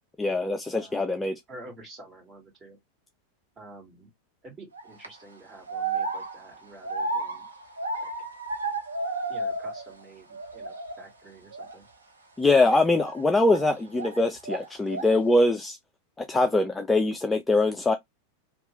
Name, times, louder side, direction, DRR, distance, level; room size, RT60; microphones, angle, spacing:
voice 1, 0.2-1.4 12.4-15.8 16.2-17.9, left 2 dB, 10° left, 0.3 m, -23 dB
voice 2, 0.7-1.1 1.5-2.8 3.6-4.1 4.4-7.5 8.0-8.1 9.3-11.8, right 2 dB, 25° right, 1.7 m, -48 dB
sound 1, 4.7-5.1 5.7-10.0 10.3-11.1 11.5-11.8 12.5-14.2 14.4-15.2, right 2 dB, 75° right, 0.6 m, -33 dB
2.9 x 2.3 x 2.9 m
figure-of-eight pair, 90°, 0 cm